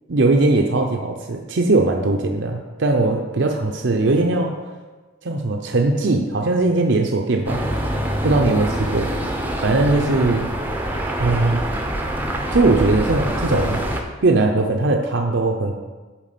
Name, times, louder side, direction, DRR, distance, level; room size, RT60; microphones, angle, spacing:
voice 1, 0.1-4.6 5.2-7.6 8.2-9.1 9.6-10.5 11.2-11.6 12.5-13.8 14.2-15.7, right 2 dB, 60° right, 2 dB, 0.6 m, -19 dB
sound 1, 7.5-14.0, right 1 dB, 10° right, 0.6 m, -25 dB
7.3 x 4.7 x 6.8 m, 1.3 s
head